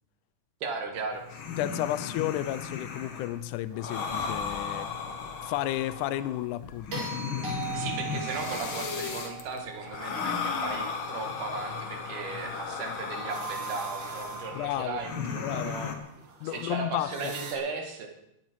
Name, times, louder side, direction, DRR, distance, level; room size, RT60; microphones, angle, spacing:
voice 1, 0.6-1.4 7.7-16.0 16.4-18.1, right 4 dB, 85° right, 3.5 m, -36 dB
sound 1, 1.1-16.0, left 6 dB, 50° left, 1.8 m, -36 dB
voice 2, 1.6-4.9 5.4-7.1 14.5-15.0 15.4-15.7 16.4-17.3, left 13 dB, 90° left, 2.1 m, -32 dB
sound 2, 6.9-11.2 13.4-13.5, right 5 dB, 70° right, 4.7 m, -39 dB
sound 3, 12.5-17.5, right 5 dB, 45° right, 2.5 m, -42 dB
21.0 x 9.8 x 4.7 m
omnidirectional pair, 3.5 m